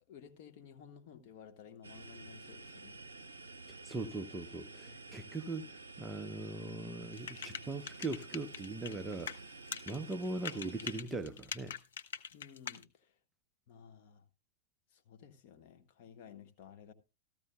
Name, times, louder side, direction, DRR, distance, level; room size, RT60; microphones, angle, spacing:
voice 1, 0.1-3.1 4.9-5.0 12.3-13.1 13.7-14.2 14.9-16.9, left 8 dB, 50° left, 1.4 m, -55 dB
sound 1, 1.8-11.0, right 3 dB, 75° right, 0.7 m, -51 dB
voice 2, 3.7-11.8, right 2 dB, 15° right, 0.6 m, -40 dB
sound 2, 7.1-9.4 9.7-12.8, left 7 dB, 65° left, 0.6 m, -42 dB
14.0 x 14.0 x 2.2 m
figure-of-eight pair, 90°, 0 cm